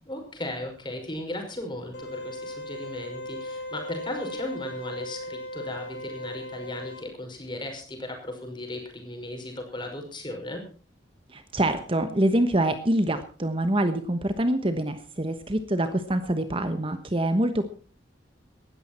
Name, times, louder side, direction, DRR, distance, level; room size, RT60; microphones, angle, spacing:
voice 1, 0.1-10.6, left 1 dB, 25° left, 3 dB, 5.5 m, -36 dB
sound 1, 1.9-7.0, left 1 dB, 65° left, 7.4 m, -37 dB
voice 2, 11.3-17.7, right 1 dB, 30° right, 9 dB, 1.1 m, -25 dB
18.5 x 13.5 x 4.4 m, 0.38 s
head